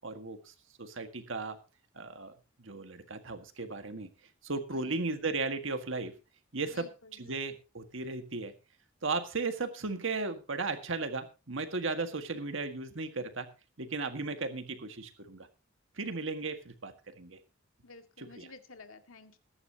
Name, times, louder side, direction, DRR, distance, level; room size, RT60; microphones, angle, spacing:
voice 1, 0.0-0.5 0.8-1.6 2.0-2.3 2.6-4.1 4.4-6.1 6.5-6.9 7.2-8.5 9.0-13.5 13.8-15.5 16.0-17.4 18.2-18.5, right 3 dB, 70° right, 8 dB, 1.8 m, -36 dB
voice 2, 4.7-5.1 6.6-7.3 16.1-16.2 17.8-19.4, left 3 dB, 90° left, 7 dB, 2.1 m, -53 dB
21.5 x 11.0 x 2.9 m, 0.30 s
head